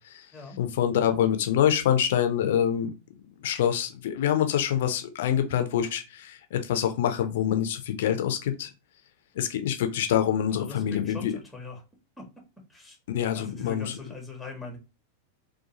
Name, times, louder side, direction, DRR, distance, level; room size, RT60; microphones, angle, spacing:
voice 1, 0.6-2.9 3.4-8.7 9.3-11.3 13.1-13.9, left 9 dB, 55° left, 0.5 m, -26 dB
voice 2, 10.5-11.8 12.2-12.3 12.7-13.0 13.3-14.8, left 3 dB, 5° left, 0.8 m, -41 dB
2.6 x 2.3 x 2.8 m
figure-of-eight pair, 90°, 0 cm